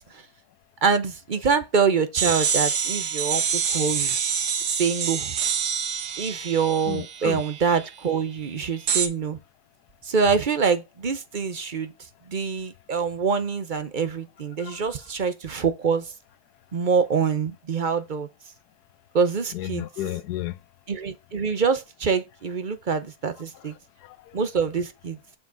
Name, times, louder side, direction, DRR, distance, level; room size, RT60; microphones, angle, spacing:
voice 1, 0.8-4.2 4.7-5.3 6.2-9.4 10.0-11.9 12.3-16.1 16.7-18.3 19.1-19.9 20.9-23.7 24.3-25.2, right 5 dB, 45° right, 0.7 m, -25 dB
sound 1, 2.2-7.9 8.9-9.1, right 7 dB, 90° right, 1.7 m, -26 dB
voice 2, 6.9-7.4 14.6-14.8 19.5-20.6 24.0-24.4, left 13 dB, 85° left, 1.3 m, -32 dB
7.1 x 5.0 x 3.8 m
omnidirectional pair, 1.6 m